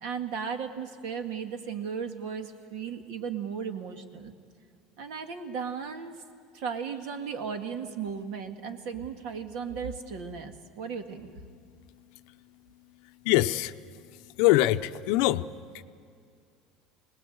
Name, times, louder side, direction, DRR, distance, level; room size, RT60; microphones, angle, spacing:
voice 1, 0.0-4.3 5.0-6.1 6.5-11.3, right 6 dB, 60° right, 6 dB, 2.0 m, -35 dB
voice 2, 13.2-13.8 14.1-15.5 15.7-15.8, left 16 dB, 65° left, 11 dB, 0.7 m, -24 dB
26.5 x 19.5 x 8.0 m, 2.3 s
cardioid pair, 165°, 0 cm